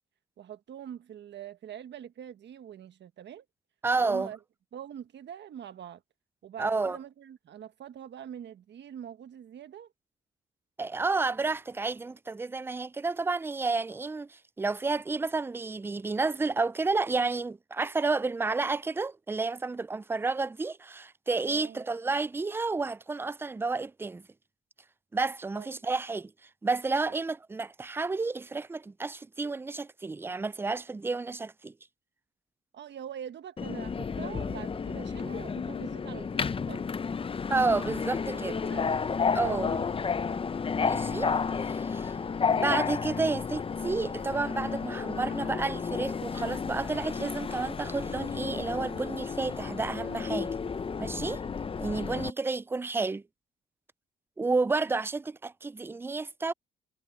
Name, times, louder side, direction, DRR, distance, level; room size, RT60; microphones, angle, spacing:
voice 1, 0.4-3.4 4.0-4.4 4.7-6.0 6.4-9.9 21.5-21.8 25.5-25.7 27.1-27.2 32.7-36.9 38.3-38.9 39.3-39.9 51.7-51.8, right 9 dB, 65° right, 1.4 m, -44 dB
voice 2, 3.8-4.3 6.6-7.0 10.8-24.2 25.1-26.3 26.6-31.7 37.5-38.5 39.3-39.8 40.8-41.3 41.6-42.1 42.5-50.5 51.0-51.4 51.8-53.2 54.4-56.5, right 3 dB, 10° right, 0.4 m, -31 dB
Subway metro underground, 33.6-52.3, left 5 dB, 25° left, 0.6 m, -32 dB
cardioid pair, 90°, 20 cm